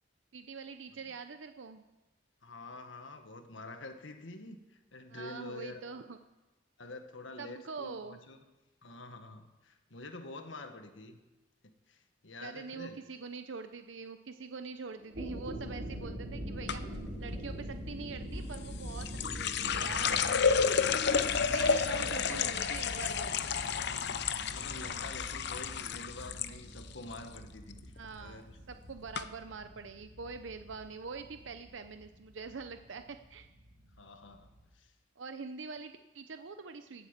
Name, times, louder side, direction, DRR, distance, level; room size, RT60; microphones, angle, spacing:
voice 1, 0.3-1.8 5.1-6.2 7.4-8.2 12.4-20.3 21.1-23.4 28.0-33.5 35.2-37.1, right 4 dB, 85° right, 8 dB, 0.7 m, -44 dB
voice 2, 2.4-5.8 6.8-8.4 8.8-11.2 11.9-13.0 21.3-22.5 23.6-27.9 28.2-28.6 34.0-34.5 34.7-34.9, left 2 dB, 90° left, 7 dB, 1.6 m, -47 dB
sound 1, 15.0-34.6, equal, 55° right, 6.6 m, -44 dB
sound 2, 16.7-17.1 18.5-26.5 26.8-27.4 27.7-28.0 28.7-28.8 29.1-29.2, left 6 dB, 65° left, 0.8 m, -31 dB
17.0 x 8.8 x 7.4 m, 1.1 s
head